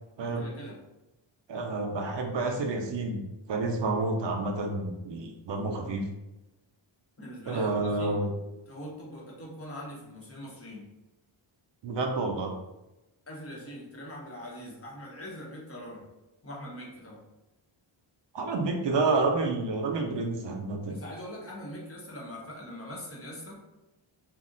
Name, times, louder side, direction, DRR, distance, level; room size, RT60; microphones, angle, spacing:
voice 1, 0.2-0.8 7.2-8.2 8.7-10.8 13.3-16.0 16.4-17.2 20.9-23.6, equal, 30° left, -4 dB, 0.7 m, -42 dB
voice 2, 1.5-3.2 3.5-6.1 7.5-8.3 11.8-12.5 18.3-20.9, right 3 dB, 60° right, 2 dB, 0.5 m, -29 dB
2.4 x 2.1 x 3.7 m, 0.99 s
wide cardioid pair, 155°, 48 cm